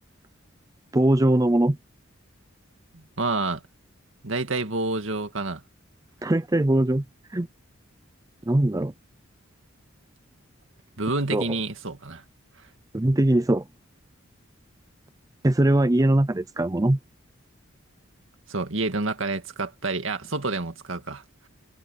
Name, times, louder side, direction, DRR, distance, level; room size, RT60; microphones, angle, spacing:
voice 1, 0.9-1.8 6.2-7.0 7.3-7.5 8.5-8.9 11.3-11.4 12.9-13.6 15.4-17.0, right 1 dB, 15° right, 0.5 m, -21 dB
voice 2, 2.9-3.6 4.2-5.6 11.0-12.2 18.5-21.5, right 3 dB, 70° right, 2.1 m, -28 dB
head